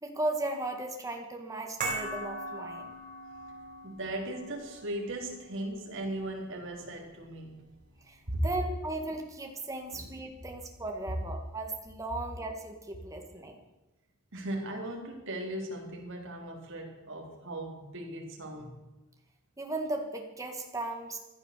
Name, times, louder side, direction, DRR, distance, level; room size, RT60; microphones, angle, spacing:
voice 1, 0.0-2.9 8.0-13.6 19.6-21.2, right 2 dB, 15° right, 2 dB, 2.1 m, -36 dB
sound 1, 1.8-8.2 8.5-8.6, right 2 dB, 35° right, 5.7 m, -41 dB
voice 2, 3.8-7.5 8.3-8.5 9.9-10.1 14.3-18.8, right 1 dB, 55° right, 0 dB, 3.7 m, -37 dB
16.0 x 11.5 x 6.9 m, 1.1 s
head